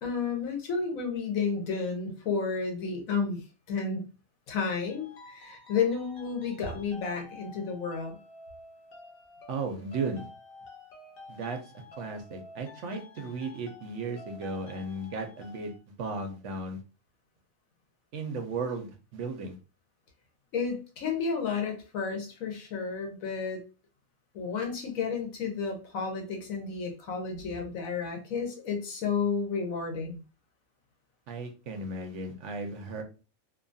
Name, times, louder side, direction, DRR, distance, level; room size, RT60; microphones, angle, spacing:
voice 1, 0.0-4.1 4.5-8.2 20.5-23.6 24.3-30.2, left 5 dB, 80° left, 3 dB, 1.2 m, -32 dB
sound 1, 4.9-15.8, left 2 dB, 55° left, 0.7 m, -50 dB
voice 2, 9.5-10.3 11.3-15.7 16.0-16.8 18.1-19.6 31.3-33.0, right 3 dB, 70° right, 5 dB, 0.8 m, -35 dB
2.7 x 2.3 x 2.5 m, 0.33 s
omnidirectional pair, 1.4 m